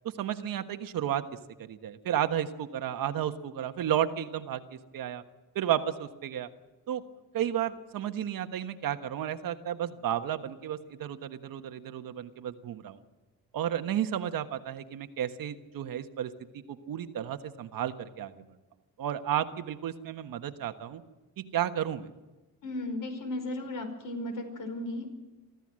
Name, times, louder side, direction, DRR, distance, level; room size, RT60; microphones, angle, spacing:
voice 1, 0.0-1.2 1.6-5.2 5.5-6.5 6.9-7.0 7.3-13.0 13.5-16.3 16.7-18.3 19.0-21.0 21.4-22.1, right 10 dB, 65° right, 8 dB, 1.4 m, -32 dB
voice 2, 22.6-25.1, left 1 dB, 60° left, 7 dB, 5.1 m, -35 dB
24.5 x 14.5 x 7.6 m, 1.1 s
cardioid pair, 125°, 37 cm